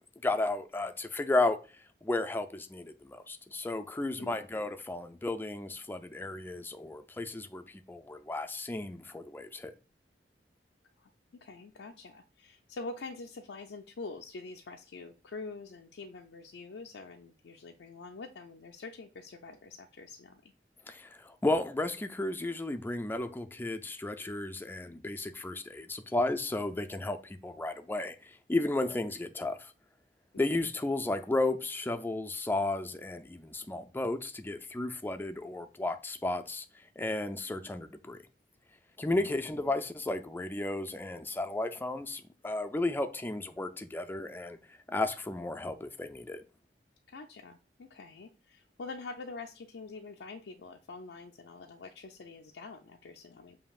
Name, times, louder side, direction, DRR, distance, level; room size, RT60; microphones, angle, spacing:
voice 1, 0.2-1.6 2.0-9.7 20.9-29.7 30.4-36.6 37.0-38.2 39.0-44.6 44.9-46.4, left 2 dB, 10° left, 0.4 m, -33 dB
voice 2, 11.0-20.5 30.5-30.7 39.1-39.3 47.1-53.6, left 3 dB, 85° left, 0.4 m, -45 dB
7.2 x 2.8 x 2.4 m
head